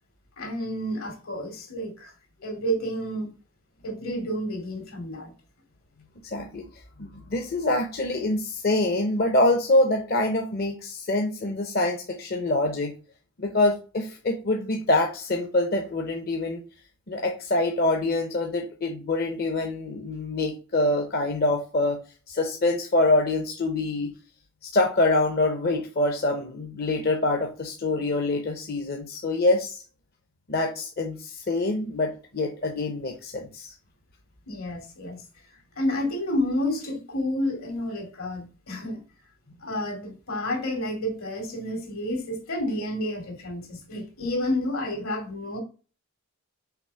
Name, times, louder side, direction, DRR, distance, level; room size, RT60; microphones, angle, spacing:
voice 1, 0.4-2.1 2.4-3.3 3.8-5.3 34.5-35.2 35.8-39.0 39.6-45.6, left 1 dB, 75° left, 2.5 m, -30 dB
voice 2, 6.2-6.6 7.0-12.9 13.4-16.6 17.1-22.0 22.3-24.1 24.6-29.8 30.5-33.7, left 2 dB, 45° left, 0.8 m, -25 dB
6.0 x 3.4 x 5.6 m
head